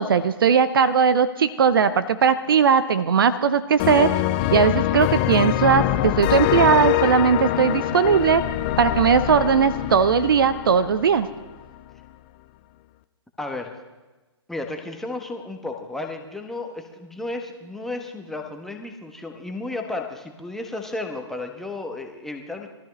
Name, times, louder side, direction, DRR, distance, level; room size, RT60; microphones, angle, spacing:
voice 1, 0.0-4.1 4.5-8.4 8.8-11.3, right 6 dB, 50° right, 14 dB, 0.8 m, -18 dB
sound 1, 3.8-11.4, left 14 dB, 20° left, 0.4 m, -24 dB
voice 2, 13.4-13.7 14.5-22.7, left 2 dB, ahead, 3 dB, 1.1 m, -33 dB
22.0 x 13.5 x 3.2 m, 1.2 s
figure-of-eight pair, 130°, 15 cm